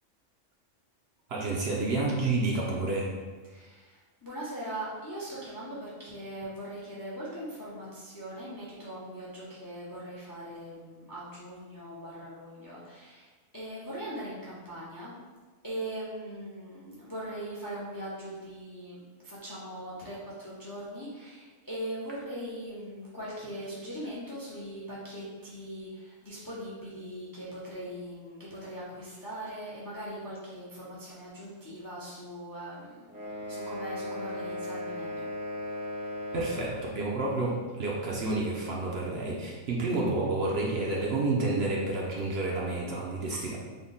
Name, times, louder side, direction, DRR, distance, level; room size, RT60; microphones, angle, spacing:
voice 1, 1.3-3.1 36.3-43.6, right 2 dB, 60° right, -3 dB, 0.8 m, -29 dB
voice 2, 3.4-15.1 15.6-35.3, right 1 dB, 25° left, -7 dB, 0.5 m, -40 dB
sound 1, 33.1-37.0, left 1 dB, 80° right, 1.5 m, -37 dB
3.5 x 2.1 x 3.8 m, 1.3 s
omnidirectional pair, 1.3 m